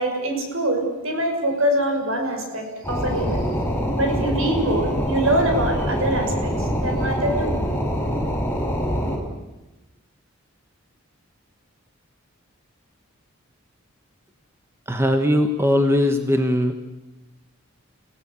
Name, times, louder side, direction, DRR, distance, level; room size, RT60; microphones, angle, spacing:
voice 1, 0.0-3.6 4.0-7.5, right 1 dB, 70° right, 3 dB, 6.1 m, -24 dB
sound 1, 2.8-9.2, equal, 10° left, 4.8 m, -24 dB
voice 2, 14.9-16.7, left 1 dB, 10° right, 6 dB, 1.2 m, -19 dB
29.5 x 17.5 x 8.3 m, 1.1 s
head